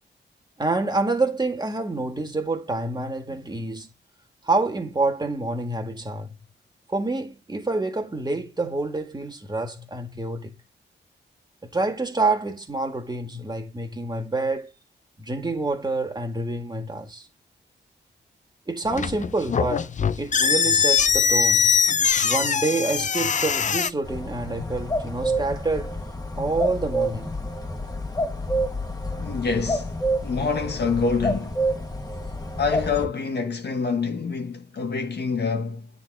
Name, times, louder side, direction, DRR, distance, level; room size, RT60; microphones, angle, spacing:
voice 1, 0.6-3.9 4.4-6.4 6.9-10.5 11.7-14.7 15.2-17.3 18.7-21.7 22.2-26.0 26.4-27.3, right 2 dB, 20° right, 2.0 m, -27 dB
sound 1, 18.8-23.9, left 6 dB, 40° left, 0.5 m, -22 dB
sound 2, 24.0-33.1, right 1 dB, 20° left, 1.6 m, -28 dB
voice 2, 29.2-29.9 30.2-31.6 32.6-35.9, left 4 dB, 65° left, 1.6 m, -26 dB
9.4 x 4.2 x 4.9 m
wide cardioid pair, 130°, 19 cm